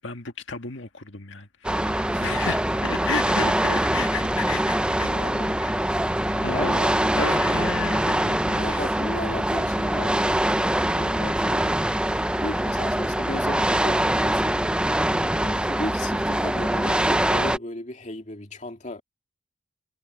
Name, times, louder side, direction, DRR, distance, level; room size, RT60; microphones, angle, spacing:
voice 1, 0.0-5.1 5.6-5.7 6.4-9.4 15.4-15.7, left 4 dB, 85° left, 1.8 m, -33 dB
sound 1, 1.6-17.6, right 1 dB, 5° right, 0.6 m, -23 dB
voice 2, 2.1-2.5 3.0-3.1 4.9-5.6 6.3-7.7 8.6-10.4 10.8-11.8 12.4-14.6 15.7-19.0, left 1 dB, 40° left, 2.5 m, -35 dB
head